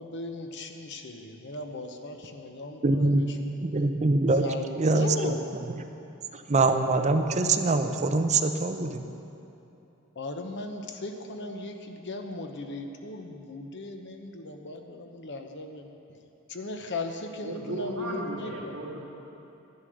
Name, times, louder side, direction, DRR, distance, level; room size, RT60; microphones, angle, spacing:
voice 1, 0.0-3.6 4.4-5.4 10.1-16.2 16.5-18.7, left 2 dB, 55° left, 5 dB, 1.0 m, -37 dB
voice 2, 2.8-3.2 3.6-5.4 5.7-5.8 6.3-9.0, right 3 dB, 35° right, 7 dB, 0.6 m, -24 dB
voice 3, 17.4-19.0, right 1 dB, 65° right, -3 dB, 2.1 m, -35 dB
11.5 x 9.7 x 6.4 m, 2.9 s
head